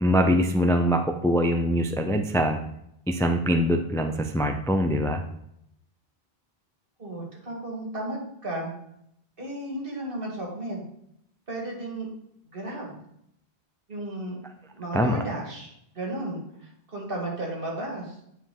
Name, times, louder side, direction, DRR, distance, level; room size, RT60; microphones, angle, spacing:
voice 1, 0.0-2.6 3.1-5.2 14.9-15.2, equal, 5° left, 5 dB, 0.3 m, -23 dB
voice 2, 7.0-8.7 9.4-10.9 11.5-12.1 12.5-13.0 13.9-14.4 14.7-18.1, right 1 dB, 65° right, -1 dB, 2.1 m, -34 dB
8.9 x 5.0 x 3.8 m, 0.76 s
omnidirectional pair, 1.0 m